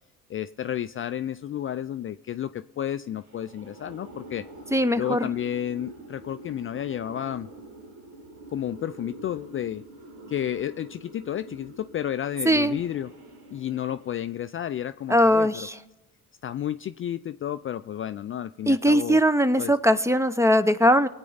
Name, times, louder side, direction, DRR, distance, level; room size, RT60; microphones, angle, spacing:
voice 1, 0.3-4.5 5.0-7.5 8.5-9.8 10.3-13.1 13.5-15.7 16.4-19.2 19.6-19.7, left 10 dB, 35° left, 12 dB, 0.4 m, -31 dB
sound 1, 3.2-14.4, right 2 dB, 75° right, 2.1 m, -46 dB
voice 2, 4.7-5.2 12.5-12.8 15.1-15.7 18.7-21.1, equal, 10° right, 13 dB, 0.7 m, -20 dB
23.0 x 8.9 x 4.0 m, 1.0 s
hypercardioid pair, 60°, 37 cm